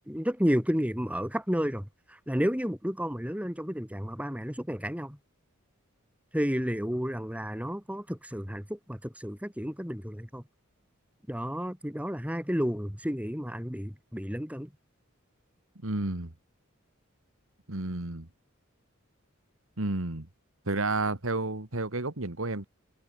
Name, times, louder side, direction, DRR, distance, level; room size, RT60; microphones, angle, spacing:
voice 1, 0.0-5.2 6.3-10.4 11.3-14.7, equal, 5° right, 5.6 m, -31 dB
voice 2, 15.8-16.3 17.7-18.3 19.8-20.3 20.7-22.7, right 2 dB, 70° right, 2.1 m, -31 dB
head